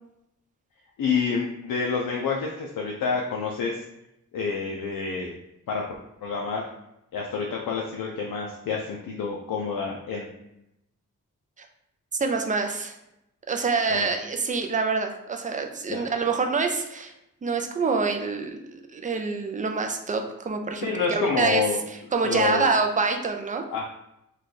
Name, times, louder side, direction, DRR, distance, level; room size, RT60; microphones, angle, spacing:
voice 1, 1.0-3.8 4.3-5.4 5.7-5.8 6.2-6.6 7.1-10.3 13.9-14.1 15.9-16.0 20.8-21.8 22.2-22.7 23.7-23.9, left 5 dB, 80° left, -1 dB, 0.5 m, -28 dB
voice 2, 12.2-12.9 13.5-17.1 17.4-21.6 21.9-23.9, right 4 dB, 25° right, 4 dB, 0.4 m, -26 dB
3.2 x 2.3 x 3.9 m, 0.85 s
wide cardioid pair, 105°, 33 cm